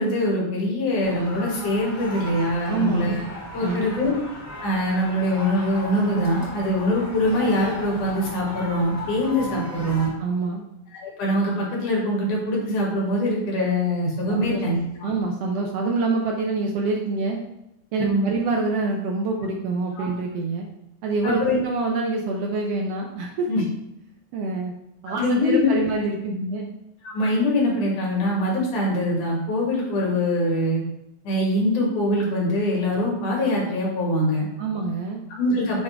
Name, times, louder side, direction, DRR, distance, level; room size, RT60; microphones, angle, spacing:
voice 1, 0.0-3.2 3.5-4.1 4.6-10.1 11.0-14.8 18.0-18.3 20.0-20.1 21.2-21.6 23.5-23.6 25.1-25.7 27.0-30.8 31.2-34.5 35.4-35.8, left 1 dB, 85° left, -3 dB, 3.5 m, -23 dB
sound 1, 1.0-10.1, left 1 dB, 10° left, 1.0 m, -37 dB
voice 2, 2.6-3.1 3.6-4.1 6.6-6.7 10.2-10.6 14.3-14.6 15.0-17.4 17.9-20.7 21.0-23.5 24.3-24.7 25.0-26.7 34.6-35.2, right 3 dB, 75° right, 1 dB, 1.5 m, -26 dB
7.7 x 3.7 x 4.5 m, 0.83 s
omnidirectional pair, 3.5 m